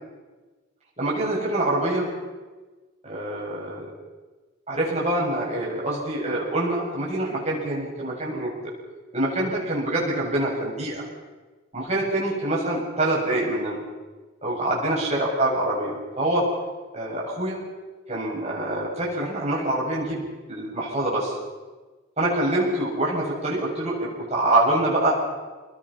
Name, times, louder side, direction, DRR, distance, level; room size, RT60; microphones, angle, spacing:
voice 1, 1.0-2.1 3.0-3.9 4.7-8.5 9.1-11.0 11.7-13.8 14.4-16.5 16.9-17.6 18.1-20.2 20.5-21.4 22.2-25.1, right 1 dB, 35° right, -4 dB, 7.7 m, -25 dB
27.5 x 21.0 x 5.8 m, 1.3 s
head